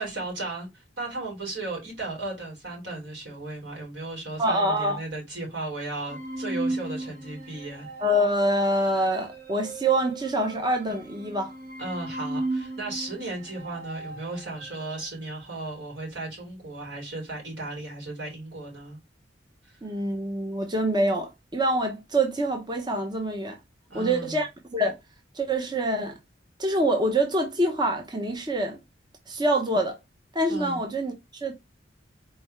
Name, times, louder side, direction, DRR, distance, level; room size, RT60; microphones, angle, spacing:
voice 1, 0.0-7.9 11.8-19.0 19.6-19.8 23.9-24.4 30.5-30.8, right 2 dB, 80° right, 3.3 m, -35 dB
voice 2, 4.4-5.0 8.0-11.5 19.8-23.6 23.9-25.0 25.3-26.2 26.6-28.8 29.3-30.0 30.3-31.5, right 1 dB, 25° right, 0.7 m, -25 dB
sound 1, 6.1-15.1, right 2 dB, 55° right, 1.4 m, -36 dB
4.4 x 3.4 x 3.1 m
head